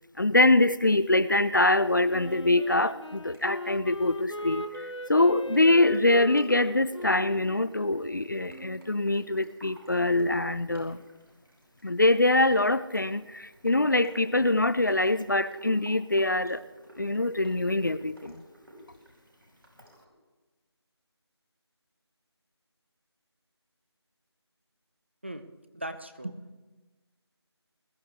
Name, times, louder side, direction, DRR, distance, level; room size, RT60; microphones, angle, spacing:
voice 1, 0.2-11.0 11.8-16.6 17.0-18.4, left 2 dB, 45° left, 15 dB, 0.4 m, -24 dB
Wind instrument woodwind instrument, 2.1-8.8, equal, 80° left, 1.2 m, -40 dB
sound 1, 3.3-20.1, equal, 60° right, 5.5 m, -53 dB
voice 2, 25.7-26.6, right 1 dB, 25° right, 8 dB, 0.6 m, -38 dB
21.0 x 12.5 x 3.5 m, 1.2 s
figure-of-eight pair, 170°, 15 cm